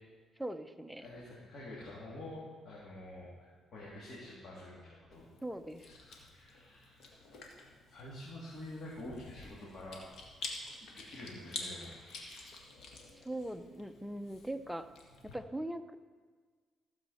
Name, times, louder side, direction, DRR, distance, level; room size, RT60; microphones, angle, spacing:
voice 1, 0.4-1.1 5.4-5.9 13.2-14.9 15.2-16.0, right 1 dB, ahead, 8 dB, 0.6 m, -40 dB
voice 2, 1.0-5.3 6.0-7.1 7.9-10.0 10.8-12.6, left 1 dB, 50° left, -7 dB, 2.9 m, -48 dB
Chewing mastication, 5.1-15.3, left 3 dB, 75° left, 1.8 m, -49 dB
15.5 x 7.3 x 4.3 m, 1.5 s
cardioid pair, 90°, 0 cm